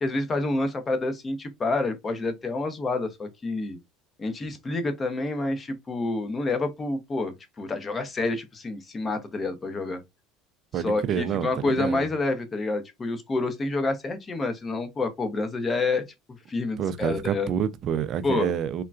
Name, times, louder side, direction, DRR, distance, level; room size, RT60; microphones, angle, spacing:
voice 1, 0.0-3.8 4.2-10.0 10.8-16.0 16.5-17.5 18.2-18.5, left 2 dB, 25° left, 0.8 m, -28 dB
voice 2, 10.7-12.1 16.8-18.8, right 8 dB, 45° right, 0.4 m, -28 dB
3.7 x 2.2 x 2.4 m
supercardioid pair, 115°, 0 cm